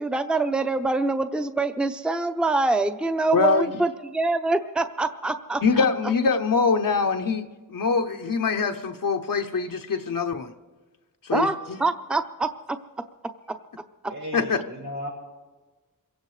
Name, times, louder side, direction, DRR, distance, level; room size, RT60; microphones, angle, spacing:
voice 1, 0.0-5.8 11.3-12.5, right 3 dB, 5° right, 0.6 m, -25 dB
voice 2, 3.3-3.7 5.6-10.5 11.2-11.8 14.3-14.6, left 4 dB, 70° left, 0.8 m, -24 dB
voice 3, 14.1-15.1, equal, 80° right, 5.4 m, -35 dB
27.0 x 16.5 x 3.2 m
wide cardioid pair, 70°, 34 cm